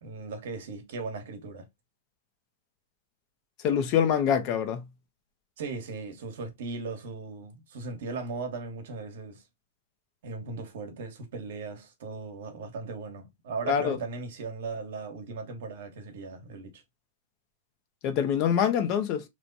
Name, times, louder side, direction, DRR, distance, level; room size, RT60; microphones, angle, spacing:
voice 1, 0.0-1.7 5.6-9.4 10.2-16.8, right 4 dB, 70° right, 1.1 m, -38 dB
voice 2, 3.6-4.8 13.6-14.0 18.0-19.2, left 8 dB, 40° left, 0.6 m, -25 dB
3.1 x 2.1 x 3.9 m
supercardioid pair, 155°, 0 cm